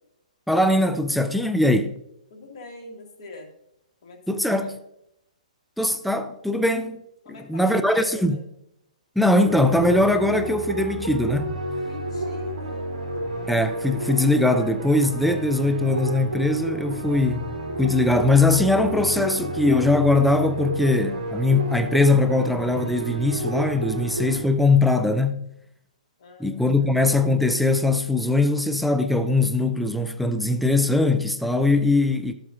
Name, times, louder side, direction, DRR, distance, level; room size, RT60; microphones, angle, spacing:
voice 1, 0.5-2.0 4.3-4.8 5.8-7.0 7.5-8.4 9.2-11.5 13.5-17.4 17.8-25.4 26.4-32.3, left 2 dB, ahead, 0.4 m, -21 dB
voice 2, 2.3-3.5 4.0-4.8 7.2-8.4 11.8-12.9 26.2-26.9, left 3 dB, 50° left, 1.9 m, -43 dB
sound 1, 9.4-24.4, right 1 dB, 80° right, 2.7 m, -31 dB
12.0 x 7.9 x 2.5 m
hypercardioid pair, 130°, 4 cm